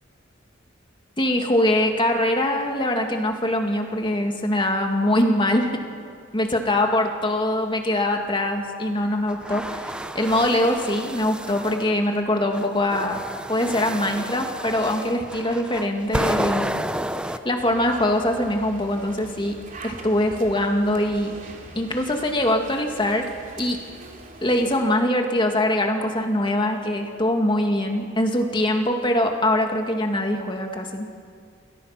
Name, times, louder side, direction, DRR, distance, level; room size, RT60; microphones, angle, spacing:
voice 1, 1.2-5.8 6.3-13.2 13.5-16.7 17.3-19.6 19.8-21.4 21.8-23.3 23.6-23.8 24.4-31.1, left 1 dB, 25° left, 3 dB, 2.4 m, -23 dB
sound 1, 9.3-11.9 12.5-17.4, right 1 dB, 5° right, 0.8 m, -30 dB
sound 2, 17.6-24.7, right 2 dB, 40° right, 2.9 m, -43 dB
29.0 x 22.0 x 6.0 m, 2.1 s
head